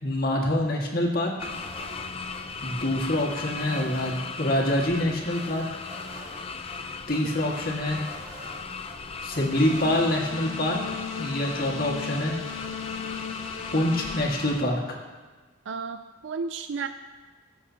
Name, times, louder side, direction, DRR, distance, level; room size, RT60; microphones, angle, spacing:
voice 1, 0.0-1.3 2.6-5.7 7.1-8.0 9.2-10.8 11.2-12.4 13.7-14.8, left 1 dB, 45° left, -2 dB, 1.9 m, -25 dB
sound 1, 1.4-14.6, left 4 dB, 30° left, 0.4 m, -37 dB
sound 2, 1.5-2.4 2.8-4.2 4.5-4.6 4.9-6.4 6.7-6.8 7.1-9.0 9.3-10.1, right 1 dB, 15° right, 3.2 m, -46 dB
sound 3, 9.5-14.3, left 6 dB, 75° left, 1.2 m, -36 dB
voice 2, 15.7-16.9, right 5 dB, 60° right, 9 dB, 0.4 m, -33 dB
21.5 x 7.4 x 2.9 m, 1.3 s
head